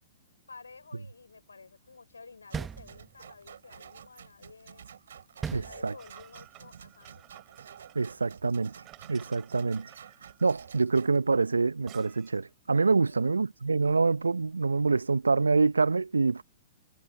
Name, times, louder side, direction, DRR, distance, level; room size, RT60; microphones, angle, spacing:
voice 1, 0.5-4.9 5.6-7.3 13.1-13.3, left 4 dB, 80° left, 5.8 m, -51 dB
sound 1, 2.5-3.4 5.4-6.3, right 6 dB, 15° right, 1.0 m, -38 dB
sound 2, 2.5-11.2, right 8 dB, 65° right, 2.8 m, -51 dB
voice 2, 5.5-5.9 7.9-8.7 9.1-9.9 10.4-16.4, right 4 dB, 80° right, 0.7 m, -26 dB
sound 3, 6.0-12.5, right 20 dB, 30° right, 4.6 m, -55 dB
figure-of-eight pair, 115°, 0 cm